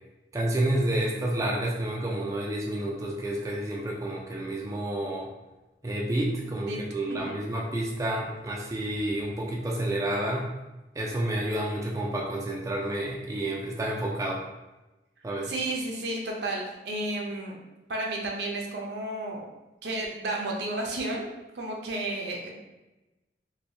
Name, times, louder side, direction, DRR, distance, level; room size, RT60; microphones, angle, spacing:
voice 1, 0.3-5.3 5.8-10.5 11.0-14.4 15.2-15.5, right 1 dB, 20° right, -2 dB, 0.3 m, -29 dB
voice 2, 6.4-6.8 7.1-7.4 15.5-17.6 17.9-19.5 19.8-21.3 21.5-22.5, right 2 dB, 65° right, -1 dB, 0.6 m, -32 dB
3.3 x 2.6 x 2.6 m, 1.1 s
head